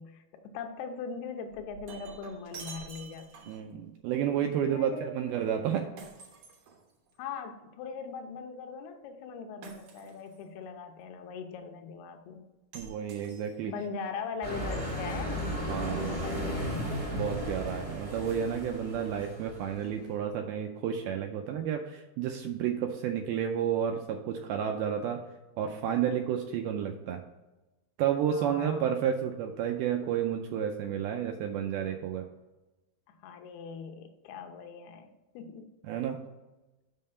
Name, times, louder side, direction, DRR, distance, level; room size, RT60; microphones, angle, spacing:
voice 1, 0.0-3.3 4.7-5.1 7.2-12.5 13.7-15.5 16.1-16.8 28.3-28.9 33.2-35.7, left 5 dB, 85° left, 6 dB, 2.7 m, -40 dB
Shatter, 1.5-3.7 6.0-7.3 9.6-10.4 12.7-13.8, right 4 dB, 65° right, 2.4 m, -48 dB
voice 2, 3.5-5.9 12.7-13.7 15.7-16.2 17.1-25.2 25.6-27.2 28.0-32.2 35.9-36.2, right 9 dB, 80° right, 4 dB, 2.3 m, -31 dB
sound 1, 14.4-20.0, equal, 25° right, 0.8 m, -35 dB
6.5 x 5.5 x 5.5 m, 1.0 s
omnidirectional pair, 4.6 m